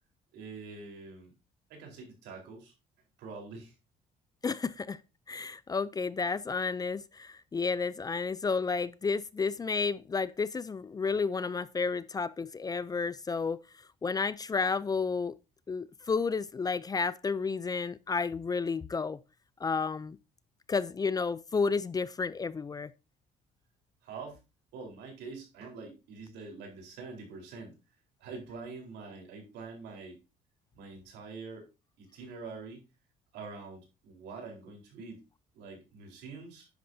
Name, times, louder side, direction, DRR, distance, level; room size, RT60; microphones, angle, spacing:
voice 1, 0.3-1.3 1.7-2.7 3.2-3.7 24.0-24.4 24.7-27.8 28.2-30.2 30.7-31.7 32.0-32.8 33.3-35.3 35.5-36.7, right 4 dB, 85° right, 4.1 m, -45 dB
voice 2, 4.4-5.0 5.3-13.6 14.0-15.4 15.7-19.2 19.6-20.2 20.7-22.9, left 4 dB, 20° left, 0.4 m, -31 dB
10.0 x 8.4 x 2.7 m
cardioid pair, 110°, 17 cm